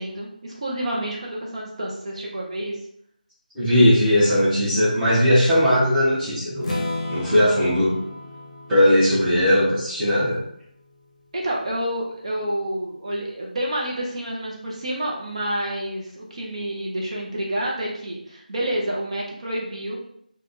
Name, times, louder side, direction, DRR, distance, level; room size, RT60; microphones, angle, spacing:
voice 1, 0.0-2.8 11.3-20.0, right 1 dB, 40° right, -3 dB, 0.5 m, -29 dB
voice 2, 3.5-6.7 7.1-7.9 8.7-10.4, left 1 dB, 5° right, -13 dB, 0.7 m, -18 dB
Strum, 6.6-10.6, left 2 dB, 45° left, 0.7 m, -33 dB
3.4 x 2.2 x 2.5 m, 0.71 s
figure-of-eight pair, 170°, 5 cm